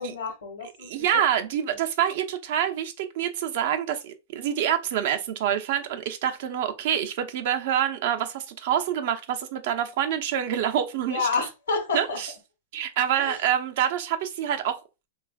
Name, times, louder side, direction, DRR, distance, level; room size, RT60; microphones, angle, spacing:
voice 1, 0.0-1.2 11.1-12.2 13.2-13.4, left 4 dB, 85° left, 0.9 m, -29 dB
voice 2, 0.8-11.3 11.9-12.3 12.7-14.8, right 10 dB, 65° right, 0.6 m, -26 dB
3.3 x 2.3 x 2.3 m
hypercardioid pair, 115°, 0 cm